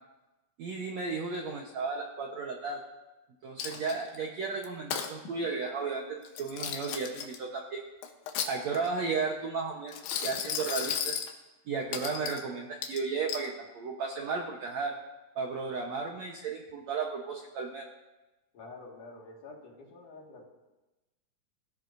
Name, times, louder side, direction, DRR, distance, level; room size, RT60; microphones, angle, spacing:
voice 1, 0.6-2.8 3.4-7.8 8.5-11.2 11.7-14.9 15.4-17.9, right 4 dB, 70° right, 0 dB, 1.7 m, -34 dB
Coin (dropping), 3.6-4.2 4.6-5.1 6.2-7.4 8.0-9.0 9.9-11.3 11.9-12.4 12.8-13.5, left 8 dB, 80° left, 3.1 m, -35 dB
voice 2, 18.5-20.5, left 3 dB, 55° left, -2 dB, 3.3 m, -48 dB
20.5 x 16.0 x 2.7 m, 1.1 s
omnidirectional pair, 4.6 m